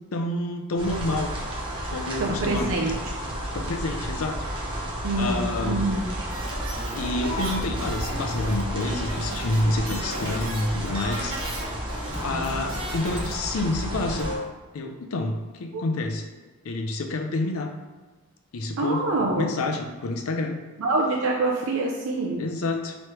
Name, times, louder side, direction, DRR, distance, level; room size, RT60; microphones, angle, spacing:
voice 1, 0.1-1.3 1.9-2.7 3.5-4.3 5.2-5.9 7.0-11.3 12.2-14.3 14.7-16.2 16.6-17.7 18.5-19.0 19.3-20.6 22.4-23.0, left 2 dB, 80° left, 4 dB, 0.5 m, -28 dB
sound 1, 0.8-14.4, equal, 25° right, 0.7 m, -32 dB
voice 2, 2.2-2.9 5.0-6.0 15.7-15.8 18.8-19.5 20.8-22.4, right 2 dB, 70° right, -1 dB, 0.5 m, -25 dB
sound 2, 6.3-13.3 13.6-13.7 13.9-14.5, right 1 dB, 85° right, 1.2 m, -35 dB
4.8 x 3.1 x 3.0 m, 1.2 s
head